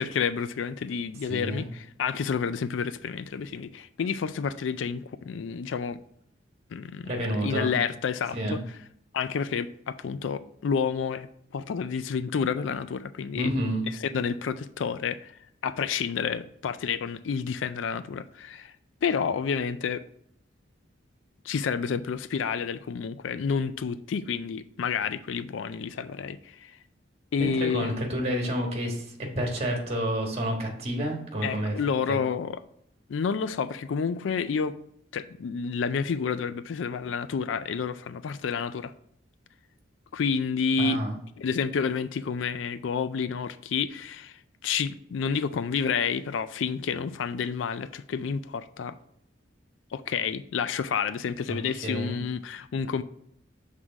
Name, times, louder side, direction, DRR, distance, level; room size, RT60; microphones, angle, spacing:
voice 1, 0.0-6.0 6.7-8.8 9.1-11.3 11.5-13.5 13.9-15.3 15.6-18.7 19.0-20.0 21.4-26.8 27.3-28.0 31.4-32.6 33.1-34.8 35.1-38.9 40.1-41.0 41.4-49.0 49.9-53.0, left 6 dB, 80° left, 0.4 m, -29 dB
voice 2, 1.3-1.7 7.0-7.7 8.3-8.6 13.4-13.8 27.4-29.0 29.4-31.7 32.1-32.2 40.8-41.1 51.5-51.6 51.8-52.2, right 1 dB, 35° right, 1.4 m, -29 dB
6.3 x 3.8 x 5.9 m
head